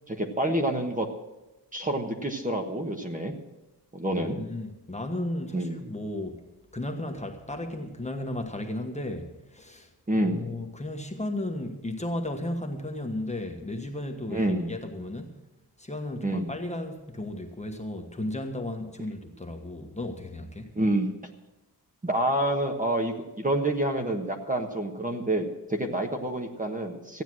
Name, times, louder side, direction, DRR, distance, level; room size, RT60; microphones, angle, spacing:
voice 1, 0.1-1.1 1.7-3.3 3.9-4.4 5.5-5.8 10.1-10.5 14.3-14.8 16.2-16.5 20.7-21.1 22.0-27.2, right 1 dB, 20° right, 3 dB, 1.3 m, -28 dB
voice 2, 4.1-6.4 6.7-9.9 10.2-15.3 15.8-20.7, left 1 dB, 15° left, 3 dB, 1.4 m, -34 dB
15.0 x 9.2 x 6.2 m, 0.99 s
wide cardioid pair, 120°, 41 cm